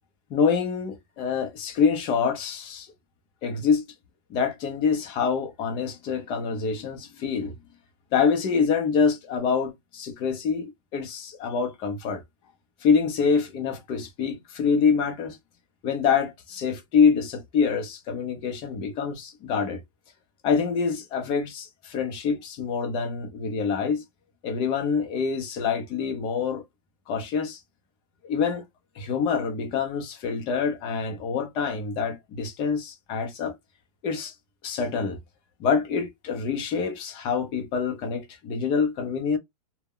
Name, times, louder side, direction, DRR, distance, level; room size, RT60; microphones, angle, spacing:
voice 1, 0.3-2.9 3.4-3.8 4.3-7.5 8.1-12.2 12.8-15.4 15.8-19.8 20.4-24.0 24.4-26.6 27.1-27.6 28.2-28.6 29.0-33.5 34.0-34.3 34.6-35.2 35.6-39.4, left 6 dB, 25° left, 0.5 m, -26 dB
2.2 x 2.0 x 3.6 m
supercardioid pair, 160°, 20 cm